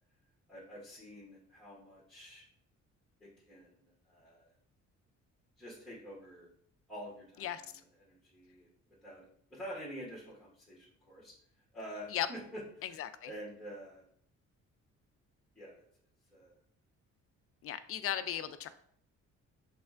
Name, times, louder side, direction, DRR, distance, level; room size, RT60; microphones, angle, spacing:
voice 1, 0.5-2.4 3.2-4.5 5.6-6.5 6.9-7.6 8.0-8.7 9.0-11.3 11.7-12.9 13.3-14.0 15.5-15.8 16.3-16.5, equal, ahead, -8 dB, 1.5 m, -48 dB
voice 2, 12.8-13.3 17.6-18.7, left 11 dB, 50° left, 11 dB, 0.4 m, -36 dB
6.5 x 3.3 x 2.5 m, 0.63 s
cardioid pair, 135°, 29 cm